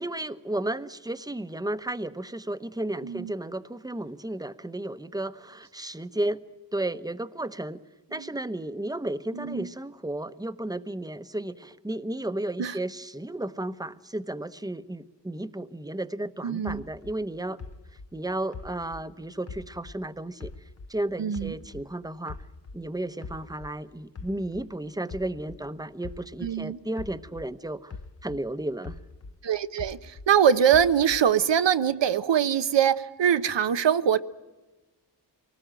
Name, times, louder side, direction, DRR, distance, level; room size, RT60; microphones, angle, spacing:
voice 1, 0.0-6.4 6.7-7.8 8.1-17.6 18.1-20.5 20.9-22.4 22.7-27.9 28.2-29.0, right 1 dB, 10° right, 12 dB, 1.0 m, -33 dB
voice 2, 9.3-9.7 12.6-12.8 16.4-16.8 21.2-21.5 26.4-26.8 29.4-34.2, right 8 dB, 80° right, 12 dB, 0.9 m, -23 dB
sound 1, 16.7-20.1 20.4-22.9 23.2-27.6 27.9-30.4 30.7-31.4, left 4 dB, 35° left, 0.9 m, -43 dB
24.0 x 19.0 x 9.0 m, 1.1 s
cardioid pair, 50°, 43 cm